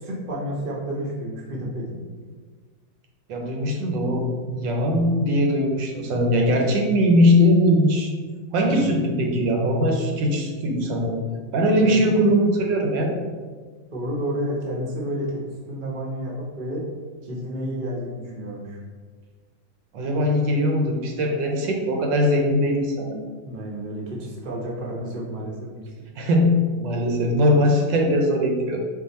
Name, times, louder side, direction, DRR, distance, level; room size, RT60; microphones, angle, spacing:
voice 1, 0.0-2.0 8.7-9.0 11.8-12.2 13.9-15.4 15.7-16.8 17.2-18.8 23.4-25.9, equal, 40° right, -3 dB, 0.7 m, -31 dB
voice 2, 3.3-8.1 8.5-11.2 11.5-13.1 19.9-23.2 26.2-28.8, equal, 75° right, 2 dB, 1.3 m, -20 dB
4.7 x 2.6 x 4.1 m, 1.5 s
omnidirectional pair, 2.1 m